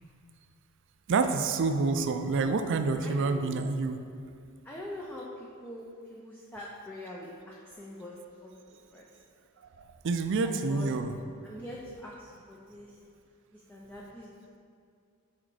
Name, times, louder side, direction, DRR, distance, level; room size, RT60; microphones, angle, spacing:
voice 1, 1.1-4.0 10.0-11.2, right 4 dB, 55° right, 8 dB, 0.4 m, -27 dB
voice 2, 3.0-3.6 4.6-8.1 8.4-9.1 10.4-10.9 11.4-13.0 13.5-14.3, left 1 dB, 10° left, -4 dB, 0.5 m, -44 dB
6.2 x 4.3 x 4.8 m, 2.4 s
head